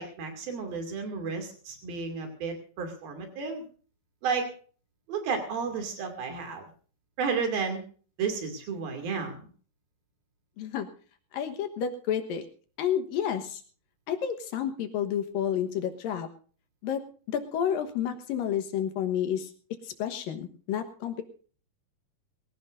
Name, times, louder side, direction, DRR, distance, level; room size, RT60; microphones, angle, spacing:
voice 1, 0.0-3.6 4.2-4.5 5.1-6.7 7.2-7.8 8.2-9.5, right 5 dB, 90° right, 5 dB, 4.4 m, -32 dB
voice 2, 10.6-10.9 11.3-12.4 12.8-13.6 14.1-16.3 16.8-17.0 17.3-19.5 19.8-21.2, left 9 dB, 80° left, 7 dB, 2.9 m, -30 dB
22.0 x 16.5 x 2.6 m, 0.41 s
omnidirectional pair, 4.1 m